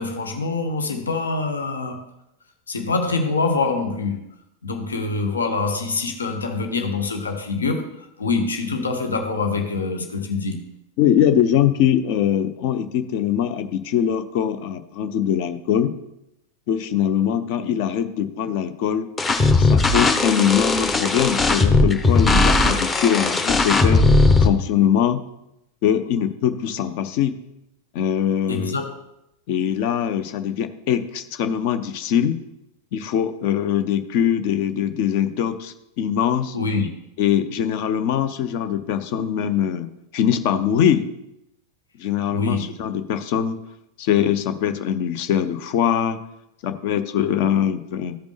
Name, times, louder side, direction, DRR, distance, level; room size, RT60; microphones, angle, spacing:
voice 1, 0.0-2.1 2.7-4.3 4.6-7.9 8.2-10.6 17.6-17.7 28.5-28.9 36.5-36.9 42.3-42.7, left 4 dB, 75° left, 1.0 m, -25 dB
voice 2, 11.0-15.9 16.7-19.1 19.6-24.1 24.4-25.2 25.8-27.4 27.9-28.8 29.5-32.4 32.9-36.6 37.2-41.1 42.0-43.6 44.0-46.2 46.6-48.2, left 9 dB, 45° left, 0.6 m, -22 dB
sound 1, 19.2-24.5, left 3 dB, 15° left, 0.9 m, -17 dB
14.5 x 5.2 x 3.2 m
figure-of-eight pair, 90°, 0 cm